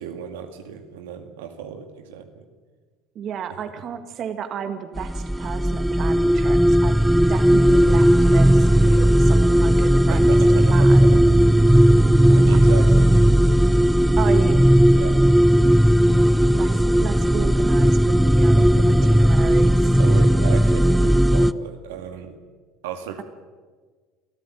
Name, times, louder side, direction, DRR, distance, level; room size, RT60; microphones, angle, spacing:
voice 1, 0.0-2.4 10.1-13.1 14.9-15.2 18.6-19.1 20.0-22.4 22.8-23.2, right 8 dB, 80° right, 5 dB, 2.1 m, -35 dB
voice 2, 3.2-7.0 7.3-10.4 10.7-11.2 14.2-14.7 16.5-20.0, right 7 dB, 50° right, 8 dB, 1.9 m, -33 dB
sound 1, 5.0-21.5, equal, 5° right, 0.7 m, -16 dB
25.0 x 14.0 x 9.3 m, 1.5 s
hypercardioid pair, 80°, 0 cm